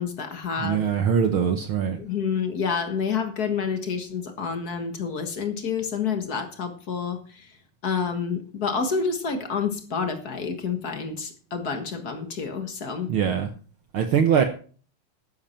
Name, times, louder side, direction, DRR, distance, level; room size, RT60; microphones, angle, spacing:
voice 1, 0.0-0.8 2.0-7.5 7.8-13.1, left 6 dB, 50° left, 7 dB, 1.2 m, -28 dB
voice 2, 0.6-2.0 13.1-13.5 13.9-14.4, right 7 dB, 90° right, 7 dB, 1.1 m, -22 dB
13.0 x 10.5 x 4.4 m, 0.41 s
omnidirectional pair, 3.8 m